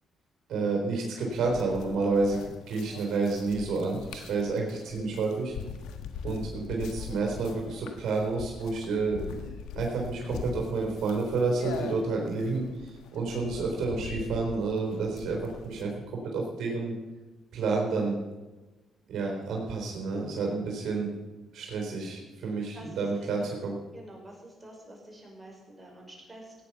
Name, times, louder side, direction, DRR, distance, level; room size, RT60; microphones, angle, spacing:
voice 1, 0.5-2.4 2.7-5.5 6.2-9.2 9.7-16.9 17.5-18.2 19.1-21.1 21.5-23.7, right 3 dB, 70° right, 0 dB, 4.0 m, -30 dB
sound 1, 1.3-15.8, left 7 dB, 85° left, 1.4 m, -42 dB
voice 2, 22.4-23.5 23.9-26.5, right 1 dB, 15° right, -1 dB, 5.4 m, -48 dB
17.0 x 9.6 x 5.9 m, 1.2 s
cardioid pair, 90°, 0 cm